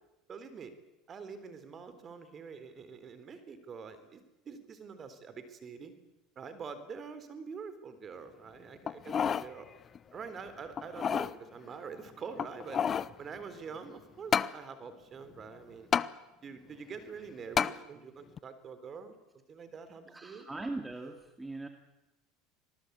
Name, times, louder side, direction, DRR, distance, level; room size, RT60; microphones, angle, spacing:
voice 1, 0.3-0.7 1.1-5.9 6.4-9.7 10.1-12.8 13.2-15.9 16.4-19.2 19.5-20.5, right 5 dB, 35° right, 12 dB, 3.8 m, -45 dB
sound 1, 8.9-9.5 9.9-10.0 10.8-11.3 12.3-13.1 14.3-14.5 15.9-16.1 17.6-17.8 18.4-18.5, left 7 dB, 35° left, 0.8 m, -29 dB
voice 2, 20.1-21.7, right 2 dB, 10° right, 5 dB, 2.3 m, -40 dB
25.5 x 19.5 x 8.4 m, 0.99 s
hypercardioid pair, 85°, 0 cm